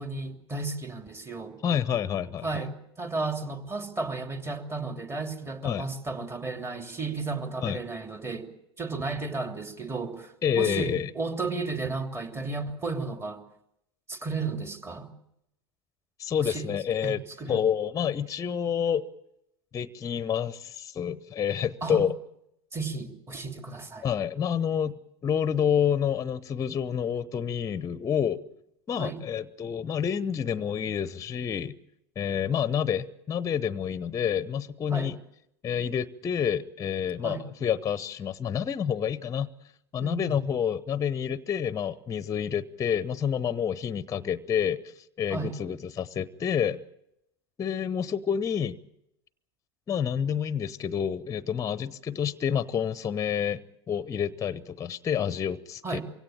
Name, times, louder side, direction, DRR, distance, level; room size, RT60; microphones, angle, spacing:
voice 1, 0.0-1.6 2.4-8.5 8.8-13.4 14.1-15.1 16.4-16.7 17.0-17.6 21.8-22.0 22.7-24.1 29.0-29.2 34.9-35.1 37.2-37.4 40.0-40.4 45.3-45.5 55.8-56.0, right 3 dB, 20° right, 6 dB, 2.9 m, -33 dB
voice 2, 1.6-2.7 5.6-5.8 7.6-7.8 10.4-11.1 16.2-17.2 17.5-19.0 19.7-22.1 24.0-28.4 28.9-31.8 32.2-35.2 35.6-39.5 39.9-44.8 45.2-46.8 47.6-48.8 49.9-53.6 53.9-56.0, left 8 dB, 25° left, 17 dB, 0.9 m, -28 dB
23.5 x 17.0 x 8.8 m, 0.81 s
hypercardioid pair, 95°, 13 cm